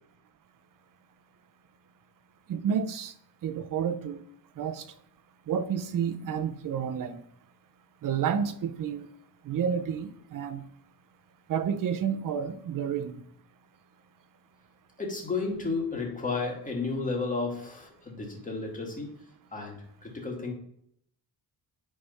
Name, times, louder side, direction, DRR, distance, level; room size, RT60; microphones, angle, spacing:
voice 1, 2.5-3.1 3.4-4.2 4.6-4.8 5.5-7.2 8.0-9.1 9.4-10.6 11.5-13.2, right 7 dB, 55° right, 10 dB, 0.7 m, -30 dB
voice 2, 15.0-19.2 19.5-20.5, left 3 dB, 20° left, 0 dB, 1.7 m, -32 dB
8.5 x 3.5 x 5.4 m, 0.71 s
wide cardioid pair, 175°, 39 cm